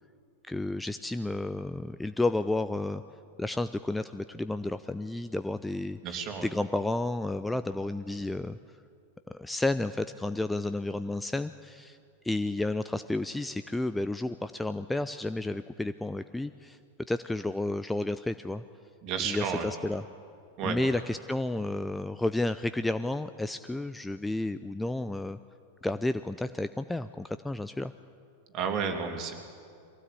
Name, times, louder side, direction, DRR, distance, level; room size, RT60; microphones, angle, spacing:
voice 1, 0.4-3.0 3.4-8.6 9.3-12.0 12.2-16.8 17.1-18.6 19.2-20.0 20.6-25.4 25.8-27.9, left 2 dB, 5° left, 11 dB, 0.5 m, -31 dB
voice 2, 6.0-6.5 19.0-19.7 20.6-20.8 28.5-29.3, right 6 dB, 35° right, 4 dB, 2.9 m, -31 dB
23.0 x 16.5 x 8.6 m, 2.3 s
figure-of-eight pair, 90°, 0 cm